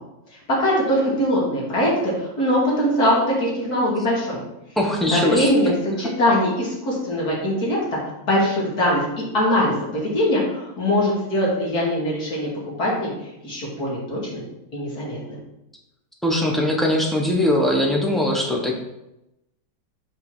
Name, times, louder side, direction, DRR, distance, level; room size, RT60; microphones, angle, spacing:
voice 1, 0.6-4.4 5.1-7.8 8.2-12.5 12.8-13.1 13.4-14.4 14.7-15.4, equal, 55° left, -5 dB, 3.0 m, -22 dB
voice 2, 4.8-5.5 16.2-18.7, left 1 dB, ahead, -1 dB, 0.9 m, -21 dB
5.8 x 5.6 x 5.6 m, 0.90 s
omnidirectional pair, 2.0 m